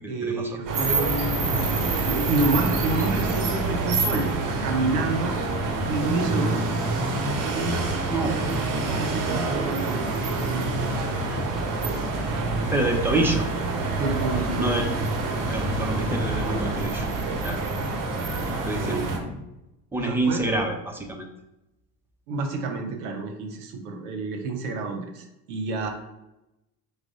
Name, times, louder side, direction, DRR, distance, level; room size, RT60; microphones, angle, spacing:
voice 1, 0.1-5.4 5.8-6.6 7.5-7.8 8.0-8.1 8.4-11.4 12.0-12.1 14.0-14.8 15.5-15.6 18.8-19.0 20.0-20.4 22.3-25.9, right 3 dB, 70° right, 4 dB, 0.8 m, -29 dB
sound 1, 0.7-19.2, right 3 dB, 40° right, 1.0 m, -26 dB
voice 2, 8.1-8.6 12.6-13.5 14.6-14.9 15.5-17.1 17.4-17.6 18.6-19.3 19.9-21.3, right 2 dB, 5° right, 2 dB, 0.6 m, -27 dB
4.7 x 2.2 x 3.7 m, 0.93 s
figure-of-eight pair, 65°, 47 cm